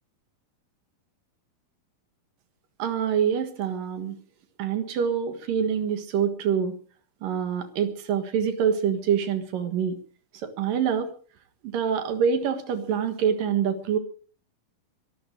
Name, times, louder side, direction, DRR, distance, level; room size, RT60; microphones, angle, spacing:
voice 1, 2.8-4.2 4.6-6.7 7.2-10.0 10.4-11.1 11.6-14.0, right 7 dB, 70° right, 9 dB, 3.2 m, -25 dB
22.5 x 12.5 x 4.8 m, 0.42 s
omnidirectional pair, 4.2 m